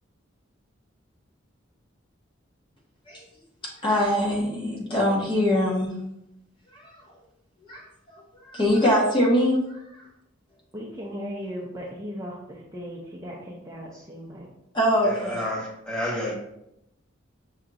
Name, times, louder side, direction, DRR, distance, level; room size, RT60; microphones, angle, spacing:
voice 1, 3.8-5.9 6.7-6.9 7.7-7.8 8.1-8.2 8.5-9.6 14.7-15.4, equal, 25° left, -3 dB, 0.9 m, -22 dB
voice 2, 10.7-14.5, equal, 15° right, -4 dB, 0.5 m, -37 dB
voice 3, 15.0-16.3, left 1 dB, 5° left, -5 dB, 1.1 m, -30 dB
5.8 x 2.8 x 2.5 m, 0.81 s
head